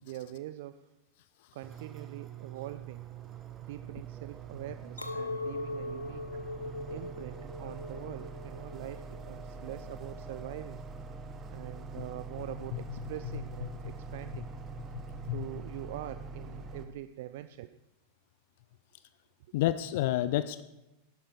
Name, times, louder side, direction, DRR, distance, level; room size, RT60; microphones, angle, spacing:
voice 1, 0.0-0.9 1.5-3.1 3.6-6.4 6.9-10.9 11.5-14.5 15.2-17.8, right 14 dB, 50° right, 12 dB, 0.4 m, -44 dB
sound 1, 1.6-16.9, right 5 dB, 25° right, 1.0 m, -44 dB
Chink clink, 5.0-10.3, left 3 dB, 80° left, 0.7 m, -41 dB
voice 2, 14.9-15.4 19.5-20.6, left 14 dB, 50° left, 14 dB, 0.4 m, -30 dB
13.5 x 11.5 x 4.3 m, 0.97 s
figure-of-eight pair, 90°, 0 cm